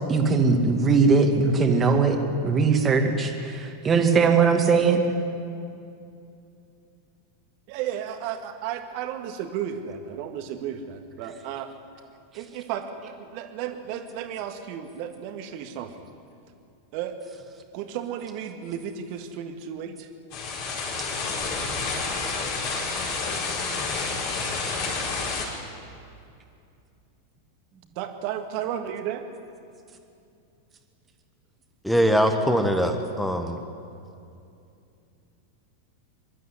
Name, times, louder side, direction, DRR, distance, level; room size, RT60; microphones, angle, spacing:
voice 1, 0.1-2.2 2.4-5.0, right 4 dB, 20° right, 5 dB, 2.2 m, -20 dB
voice 2, 7.7-11.7 12.3-16.0 16.9-17.2 17.7-20.1 28.0-29.2, right 9 dB, 45° right, 6 dB, 1.9 m, -33 dB
sound 1, 20.3-25.5, left 4 dB, 45° left, 4.7 m, -29 dB
voice 3, 31.8-33.6, equal, ahead, 5 dB, 1.4 m, -22 dB
24.0 x 12.5 x 9.8 m, 2.6 s
figure-of-eight pair, 90°, 0 cm